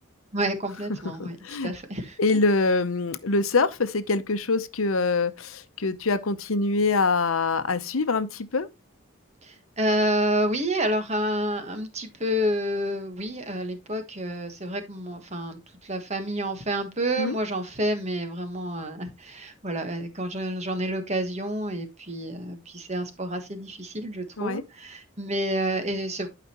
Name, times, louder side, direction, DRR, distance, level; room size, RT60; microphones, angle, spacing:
voice 1, 0.3-1.4 1.6-2.2 9.4-26.3, right 1 dB, 30° right, 1.3 m, -29 dB
voice 2, 1.2-1.7 2.2-8.7 17.2-17.4 24.4-24.6, left 3 dB, 80° left, 0.8 m, -24 dB
11.5 x 5.0 x 3.0 m
head